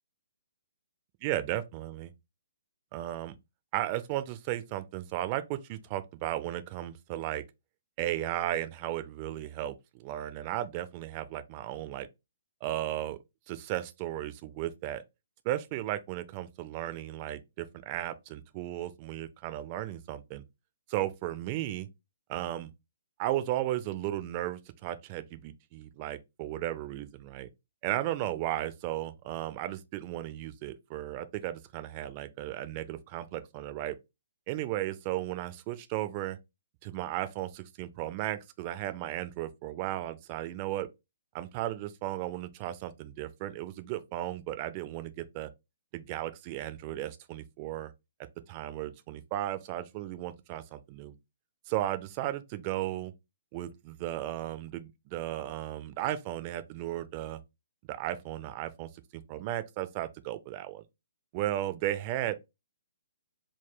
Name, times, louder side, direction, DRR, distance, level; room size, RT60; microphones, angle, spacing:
voice 1, 1.2-2.1 2.9-3.4 3.7-7.4 8.0-12.1 12.6-13.2 13.5-15.0 15.4-20.4 20.9-21.9 22.3-22.7 23.2-27.5 27.8-33.9 34.5-36.4 36.8-40.9 41.3-45.5 45.9-47.9 48.5-51.2 51.7-53.1 53.5-57.4 57.9-60.8 61.3-62.4, right 14 dB, 30° right, 0.4 m, -35 dB
3.8 x 2.2 x 4.5 m
figure-of-eight pair, 130°, 0 cm